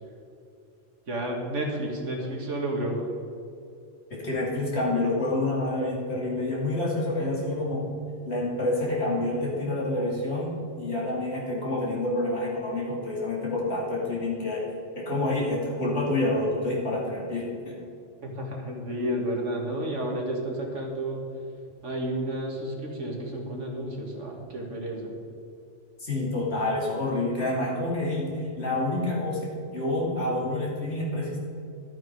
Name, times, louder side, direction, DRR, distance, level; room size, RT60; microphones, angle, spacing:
voice 1, 1.1-3.1 18.2-21.2 21.8-25.1, right 1 dB, 75° right, 0 dB, 2.2 m, -31 dB
voice 2, 4.1-7.8 8.3-14.7 15.0-17.8 26.0-29.4 29.7-31.4, left 2 dB, 60° left, -4 dB, 3.0 m, -28 dB
12.5 x 8.9 x 4.7 m, 2.7 s
omnidirectional pair, 1.3 m